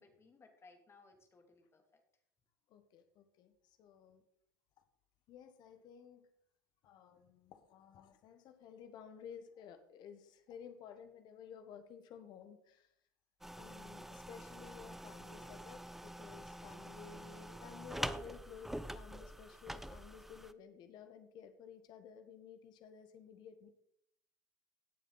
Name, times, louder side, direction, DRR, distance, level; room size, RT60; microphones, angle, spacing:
voice 1, 0.0-2.0, left 3 dB, 30° left, 4 dB, 2.7 m, -63 dB
voice 2, 2.7-4.2 4.8-4.9 5.3-6.3 6.8-12.9 13.5-23.7, left 7 dB, 50° left, 8 dB, 1.6 m, -54 dB
sound 1, 13.4-20.5, right 1 dB, 5° right, 0.6 m, -46 dB
17.0 x 7.3 x 4.1 m, 0.70 s
hypercardioid pair, 70°, 9 cm